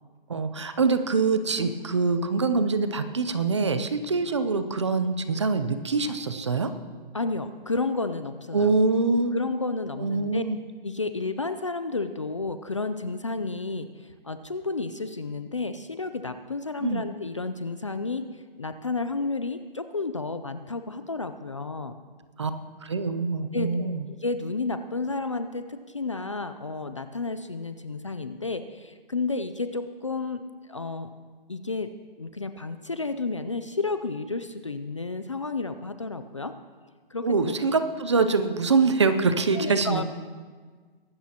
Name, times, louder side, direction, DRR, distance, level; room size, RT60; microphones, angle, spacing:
voice 1, 0.3-6.7 8.5-9.3 10.0-10.6 16.8-17.0 22.4-22.5 22.8-24.0 37.2-40.0, right 4 dB, 30° right, 10 dB, 0.5 m, -24 dB
voice 2, 7.1-8.7 9.3-10.4 10.8-18.2 18.6-21.9 23.5-30.4 30.7-31.1 31.5-31.9 32.2-36.5 37.1-37.5 39.5-40.0, left 3 dB, 35° left, 10 dB, 0.4 m, -31 dB
23.0 x 12.5 x 2.9 m, 1.5 s
hypercardioid pair, 170°, 29 cm